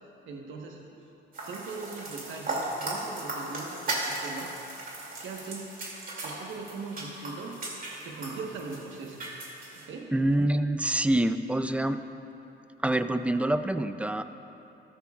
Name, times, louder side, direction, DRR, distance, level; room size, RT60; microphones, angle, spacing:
voice 1, 0.2-1.1 1.4-4.5 5.2-5.7 6.2-7.6 8.0-9.2 9.7-10.1, right 4 dB, 75° right, 0 dB, 1.3 m, -40 dB
sound 1, 1.3-9.8, right 2 dB, 45° right, 2.7 m, -37 dB
voice 2, 10.1-12.0 12.8-14.2, right 1 dB, 5° right, 10 dB, 0.4 m, -26 dB
14.0 x 13.0 x 2.4 m, 2.9 s
cardioid pair, 90°, 20 cm